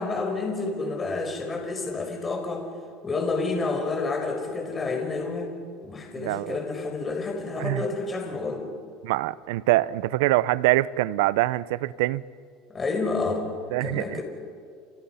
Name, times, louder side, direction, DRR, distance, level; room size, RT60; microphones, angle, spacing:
voice 1, 0.0-2.7 3.0-5.5 5.8-8.7 12.7-13.5 13.8-14.2, left 3 dB, 20° left, 5.1 m, -29 dB
voice 2, 6.2-6.6 7.6-7.8 9.0-12.2 13.7-14.2, right 17 dB, 80° right, 0.7 m, -24 dB
29.5 x 29.5 x 5.8 m
supercardioid pair, 145°, 0 cm